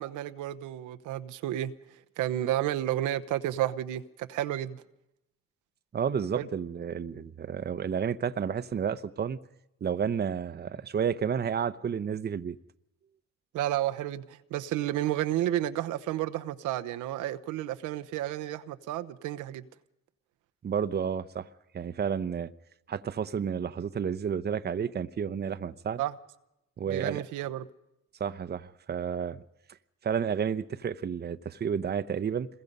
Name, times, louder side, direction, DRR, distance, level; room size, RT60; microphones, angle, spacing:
voice 1, 0.0-1.7 2.2-4.8 6.3-6.5 13.5-19.6 26.0-26.1 26.9-27.7, right 13 dB, 90° right, 0.9 m, -31 dB
voice 2, 5.9-9.4 9.8-12.6 20.6-21.5 21.7-22.5 22.9-26.0 26.8-27.2 28.2-29.4 30.0-32.5, right 7 dB, 35° right, 0.8 m, -31 dB
26.5 x 21.5 x 5.4 m
cardioid pair, 100°, 30 cm